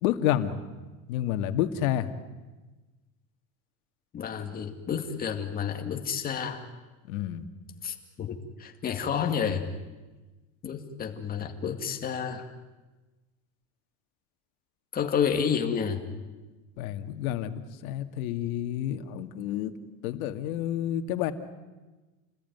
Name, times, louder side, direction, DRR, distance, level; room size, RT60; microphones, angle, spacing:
voice 1, 0.0-0.6 1.1-2.1 7.1-7.4 16.8-19.7 20.0-21.3, left 11 dB, 80° left, 8 dB, 2.2 m, -29 dB
voice 2, 4.1-6.7 7.8-9.6 10.6-12.5 14.9-16.0, left 7 dB, 20° left, 4 dB, 2.3 m, -30 dB
29.5 x 20.0 x 9.4 m, 1.2 s
cardioid pair, 175°, 42 cm